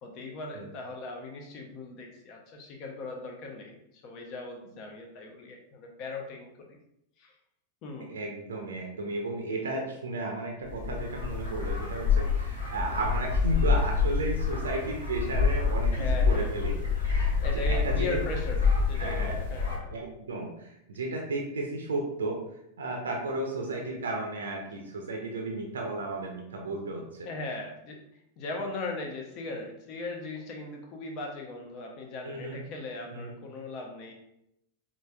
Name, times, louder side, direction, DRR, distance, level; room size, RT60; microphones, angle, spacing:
voice 1, 0.0-3.8 4.0-6.5 7.2-7.3 7.8-8.1 15.9-16.5 17.4-19.9 27.3-28.0 28.4-34.1, left 3 dB, 40° left, 2 dB, 0.6 m, -38 dB
voice 2, 8.1-16.8 17.1-18.2 19.0-19.4 19.9-22.4 22.8-27.3 32.2-32.6 33.1-33.3, right 2 dB, 70° right, 1 dB, 0.5 m, -34 dB
sound 1, 10.6-19.8, left 5 dB, 75° left, 1.2 m, -27 dB
5.0 x 2.5 x 2.3 m, 0.80 s
figure-of-eight pair, 90°, 0 cm